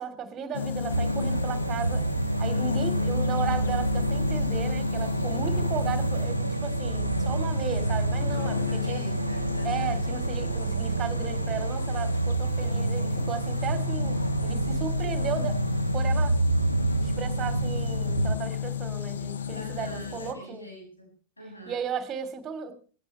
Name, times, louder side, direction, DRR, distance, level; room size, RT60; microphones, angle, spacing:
voice 1, 0.0-2.1 2.4-9.0 9.6-15.6 15.9-16.4 17.0-20.7 21.7-22.7, right 7 dB, 25° right, 10 dB, 3.2 m, -35 dB
sound 1, 0.5-20.3, left 7 dB, 65° left, 1.6 m, -33 dB
sound 2, 0.9-18.4, right 3 dB, 80° right, 0.6 m, -28 dB
voice 2, 8.2-10.0 19.5-21.8, equal, 85° left, 0 dB, 7.4 m, -44 dB
18.5 x 16.5 x 3.2 m, 0.40 s
figure-of-eight pair, 90°, 0 cm